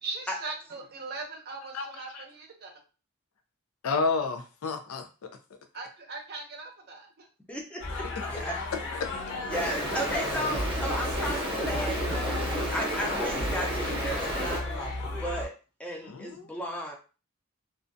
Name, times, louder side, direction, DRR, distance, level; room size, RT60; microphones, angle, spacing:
voice 1, 0.0-2.7 5.7-7.3, right 3 dB, 50° right, 2 dB, 0.6 m, -40 dB
voice 2, 1.7-2.2 3.8-5.1 16.0-16.5, left 4 dB, 90° left, 6 dB, 0.4 m, -30 dB
voice 3, 7.5-8.6 9.5-15.5 15.8-16.9, equal, 5° left, 0 dB, 0.5 m, -35 dB
sound 1, 7.8-15.5, left 2 dB, 60° left, 0.8 m, -34 dB
Stream, 9.5-14.6, right 1 dB, 25° right, 0.9 m, -32 dB
2.4 x 2.1 x 2.5 m, 0.34 s
head